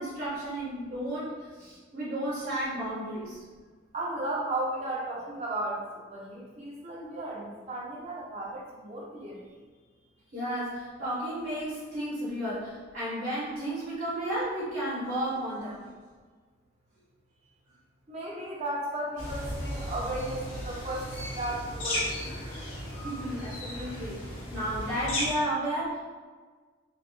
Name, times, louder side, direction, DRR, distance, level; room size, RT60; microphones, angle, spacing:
voice 1, 0.0-3.4 10.3-15.9 22.9-26.0, right 1 dB, 60° right, -10 dB, 1.2 m, -33 dB
voice 2, 3.9-9.4 18.1-21.1 21.4-22.4, right 1 dB, 30° right, -4 dB, 0.6 m, -35 dB
sound 1, 19.2-25.4, left 1 dB, 80° left, 0.8 m, -35 dB
3.6 x 2.5 x 2.4 m, 1.4 s
head